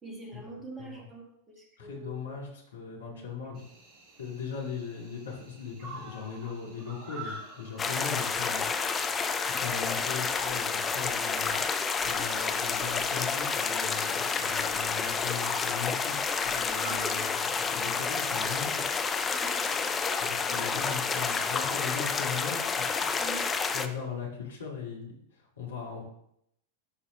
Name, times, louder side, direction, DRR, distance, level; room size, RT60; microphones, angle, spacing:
voice 1, 0.0-2.3 3.1-3.3 16.8-17.3 18.2-18.3 19.3-19.7 20.5-20.8 23.2-23.5, right 3 dB, 15° right, 1 dB, 1.8 m, -45 dB
voice 2, 1.8-3.7 4.2-9.2 9.5-18.8 20.2-23.3 23.7-26.0, left 6 dB, 70° left, -1 dB, 2.0 m, -39 dB
Cricket, 3.5-23.5, right 2 dB, 35° right, 2.4 m, -50 dB
sound 1, 7.8-23.9, left 5 dB, 20° left, 0.6 m, -29 dB
12.0 x 4.2 x 3.3 m, 0.75 s
figure-of-eight pair, 90°, 0 cm